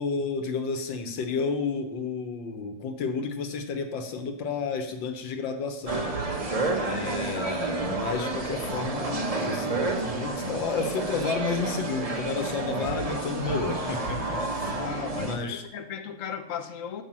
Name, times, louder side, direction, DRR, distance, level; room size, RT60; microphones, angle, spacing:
voice 1, 0.0-6.1 6.8-14.8 15.1-15.6, left 4 dB, 85° left, 6 dB, 1.8 m, -31 dB
sound 1, 5.9-15.4, right 3 dB, 25° right, 0.8 m, -30 dB
voice 2, 14.7-17.0, left 7 dB, 55° left, 5 dB, 1.0 m, -36 dB
7.2 x 6.0 x 7.4 m, 0.91 s
omnidirectional pair, 2.0 m